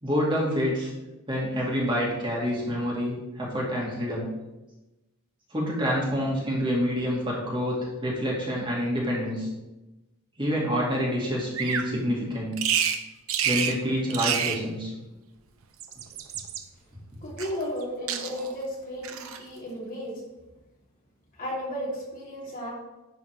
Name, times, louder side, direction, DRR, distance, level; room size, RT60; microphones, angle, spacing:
voice 1, 0.0-0.9 1.3-4.3 5.5-9.5 10.4-12.6 13.4-14.9, equal, 25° right, -4 dB, 2.0 m, -27 dB
Bird vocalization bird call bird song, 11.5-11.9 12.6-13.0 13.3-13.8 14.1-14.6 15.6-16.6 17.4-17.8 18.1-18.6 19.0-19.4, right 8 dB, 65° right, 0.7 m, -28 dB
voice 2, 17.2-20.2 21.4-22.7, equal, 40° left, -4 dB, 2.5 m, -34 dB
11.0 x 4.1 x 4.6 m, 1.0 s
head